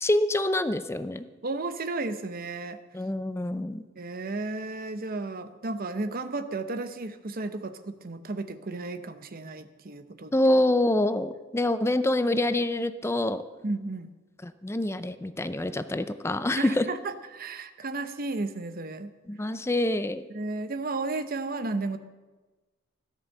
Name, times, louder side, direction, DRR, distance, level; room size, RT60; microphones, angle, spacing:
voice 1, 0.0-1.2 2.9-3.8 10.3-13.4 14.4-16.8 19.3-20.3, left 1 dB, 15° left, 11 dB, 0.5 m, -26 dB
voice 2, 1.4-2.8 4.0-10.3 13.6-14.1 16.5-19.1 20.3-22.0, right 3 dB, 45° right, 10 dB, 0.8 m, -33 dB
13.5 x 10.5 x 6.6 m, 1.2 s
head